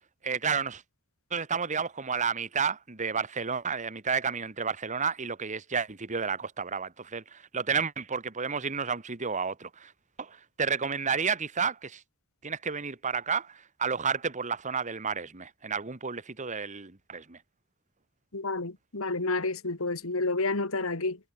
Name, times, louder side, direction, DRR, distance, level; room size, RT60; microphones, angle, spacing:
voice 1, 0.2-0.8 1.3-9.9 10.2-12.0 12.4-17.4, right 5 dB, 35° right, 1.4 m, -31 dB
voice 2, 18.3-21.2, left 3 dB, 75° left, 2.1 m, -30 dB
head